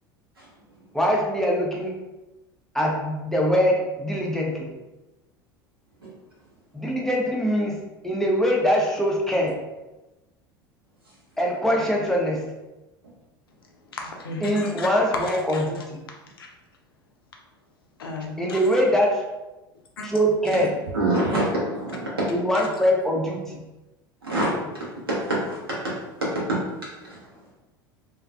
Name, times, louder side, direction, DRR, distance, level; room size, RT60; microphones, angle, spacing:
voice 1, 0.9-1.9 2.7-4.7 6.7-7.8 8.0-9.6 11.4-12.4 14.4-16.0 18.4-19.2 20.0-20.7 22.3-23.6, equal, 5° left, -2 dB, 0.5 m, -23 dB
voice 2, 13.9-14.9 15.2-15.8 16.4-16.5 18.0-18.6 20.0-20.1 22.5-22.7, left 2 dB, 75° left, 1 dB, 0.5 m, -35 dB
voice 3, 20.9-22.3 24.2-25.9 26.2-26.6 27.0-27.2, right 1 dB, 80° right, -6 dB, 0.9 m, -26 dB
2.5 x 2.4 x 2.3 m, 1.1 s
figure-of-eight pair, 75°, 12 cm